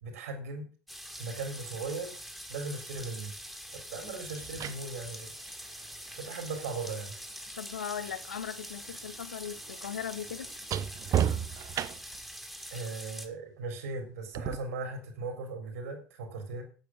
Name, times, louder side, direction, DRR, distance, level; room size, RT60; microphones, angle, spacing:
voice 1, 0.0-0.7 1.1-2.2 2.5-3.3 3.9-5.3 6.1-7.1 12.7-16.6, right 3 dB, 75° right, 3.8 m, -38 dB
sound 1, 0.9-13.3, equal, ahead, 2.3 m, -44 dB
sound 2, 3.0-3.1 4.2-8.3 8.5-12.3 14.3-14.6, right 10 dB, 45° right, 0.8 m, -36 dB
voice 2, 7.6-10.5, left 8 dB, 85° left, 0.7 m, -38 dB
9.2 x 8.6 x 6.0 m
hypercardioid pair, 65°, 8 cm